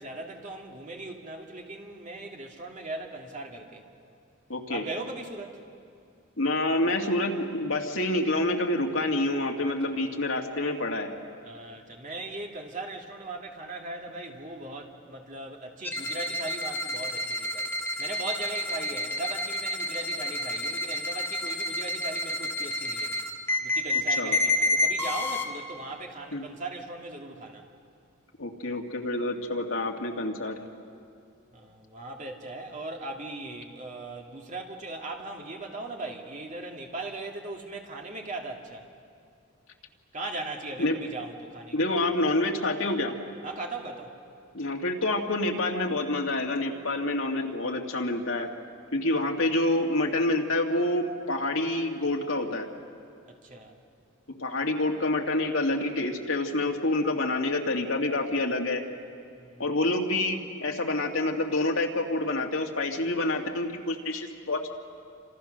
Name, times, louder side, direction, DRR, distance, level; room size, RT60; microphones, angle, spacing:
voice 1, 0.0-3.8 4.7-5.6 9.6-10.2 11.4-17.7 18.0-23.2 23.6-27.7 31.5-38.9 40.1-41.9 43.4-44.1 53.3-53.8 59.4-59.6, right 2 dB, 35° right, 1 dB, 2.5 m, -39 dB
voice 2, 4.5-4.8 6.4-11.1 24.2-24.4 26.3-26.4 28.4-30.6 40.8-41.0 41.7-43.2 44.5-48.5 48.9-52.7 54.4-58.8 59.6-64.7, left 2 dB, 70° left, 1 dB, 2.3 m, -27 dB
sound 1, 15.8-25.4, left 2 dB, 10° left, 1.9 m, -29 dB
29.0 x 27.0 x 6.6 m, 2.4 s
head